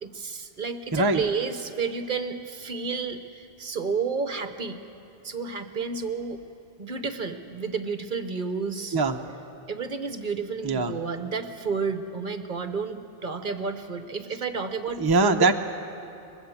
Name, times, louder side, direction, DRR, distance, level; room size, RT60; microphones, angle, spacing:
voice 1, 0.0-4.8 5.2-6.4 6.8-9.0 9.7-15.4, right 5 dB, 50° right, 8 dB, 1.0 m, -31 dB
voice 2, 15.0-15.6, right 3 dB, 25° right, 4 dB, 0.7 m, -22 dB
23.5 x 20.5 x 7.2 m, 2.7 s
omnidirectional pair, 1.2 m